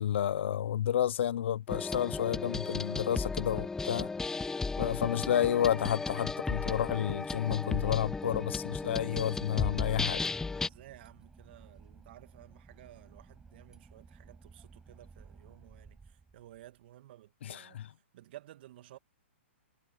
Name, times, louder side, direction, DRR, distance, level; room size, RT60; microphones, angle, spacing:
voice 1, 0.0-4.1 4.8-10.2 17.4-17.9, left 10 dB, 65° left, 0.7 m, -31 dB
sound 1, 1.7-10.7, left 4 dB, 5° left, 0.7 m, -35 dB
Boat Water vehicle / Engine, 7.9-16.8, right 4 dB, 10° right, 6.8 m, -56 dB
voice 2, 10.5-17.8 18.1-19.0, right 14 dB, 55° right, 2.3 m, -55 dB
hypercardioid pair, 130°, 7 cm